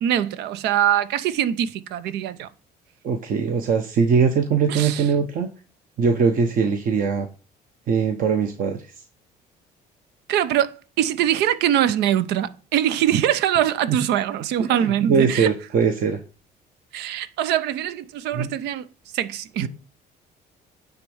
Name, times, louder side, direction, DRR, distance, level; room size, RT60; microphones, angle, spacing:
voice 1, 0.0-2.5 4.7-5.0 10.3-15.5 16.9-18.9 19.1-19.7, right 11 dB, 80° right, 0.7 m, -23 dB
voice 2, 3.0-5.5 6.0-7.3 7.9-8.9 13.9-14.0 14.6-16.2 18.3-18.5 19.6-19.7, right 6 dB, 55° right, 1.0 m, -21 dB
9.5 x 3.6 x 7.0 m
cardioid pair, 110°, 17 cm